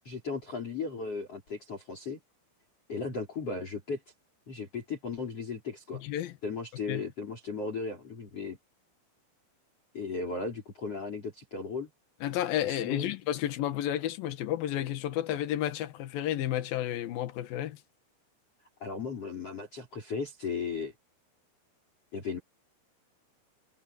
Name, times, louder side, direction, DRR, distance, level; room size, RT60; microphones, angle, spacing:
voice 1, 0.0-2.2 2.9-4.0 4.5-6.0 6.4-8.6 9.9-11.9 12.6-13.1 18.8-20.9 22.1-22.4, left 4 dB, 30° left, 5.0 m, -36 dB
voice 2, 5.9-6.3 6.9-7.0 12.2-17.8, left 12 dB, 65° left, 2.6 m, -31 dB
omnidirectional pair, 5.8 m